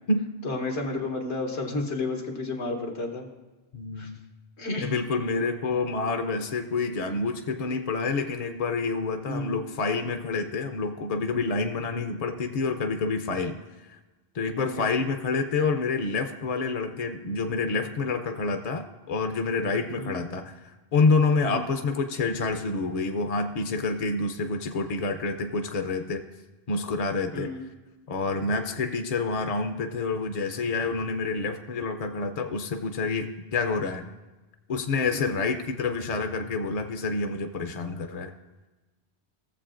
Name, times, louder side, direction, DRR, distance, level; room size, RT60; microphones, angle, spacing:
voice 1, 0.4-3.3 4.0-4.1 4.6-4.9 9.3-9.6 14.6-14.8 19.9-20.2 21.4-21.7 27.3-27.6 35.1-35.3, left 2 dB, 85° left, 1 dB, 1.4 m, -31 dB
voice 2, 3.7-4.2 4.8-13.6 13.9-14.0 14.3-26.2 26.7-27.5 28.1-34.1 34.7-38.3, left 4 dB, 45° left, 6 dB, 0.5 m, -28 dB
17.5 x 7.4 x 2.5 m, 1.2 s
omnidirectional pair, 1.1 m